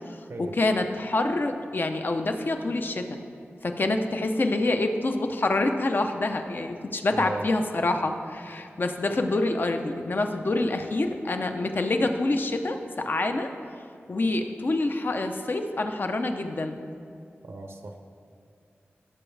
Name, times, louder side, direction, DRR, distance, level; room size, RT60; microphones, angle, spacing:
voice 1, 0.4-3.2 3.6-12.8 13.0-13.5 14.1-16.8, left 2 dB, 50° left, 6 dB, 0.7 m, -26 dB
voice 2, 7.1-7.5 17.4-18.0, right 2 dB, 75° right, 4 dB, 0.7 m, -37 dB
15.5 x 6.2 x 3.3 m, 2.5 s
wide cardioid pair, 95°, 4 cm